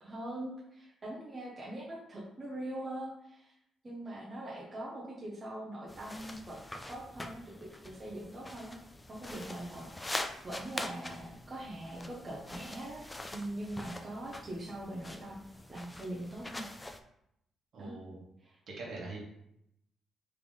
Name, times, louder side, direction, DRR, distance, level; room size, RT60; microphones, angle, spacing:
voice 1, 0.0-3.5 3.8-6.6 6.9-8.8 9.1-9.9 10.4-13.1 13.3-15.4 15.7-16.7 17.8-17.9, right 1 dB, 25° right, -5 dB, 0.9 m, -42 dB
sound 1, 5.9-17.0, left 1 dB, 10° left, 0.3 m, -44 dB
voice 2, 17.7-18.2 18.7-19.2, right 3 dB, 60° right, -2 dB, 1.4 m, -43 dB
3.5 x 3.3 x 3.9 m, 0.78 s
cardioid pair, 125°, 0 cm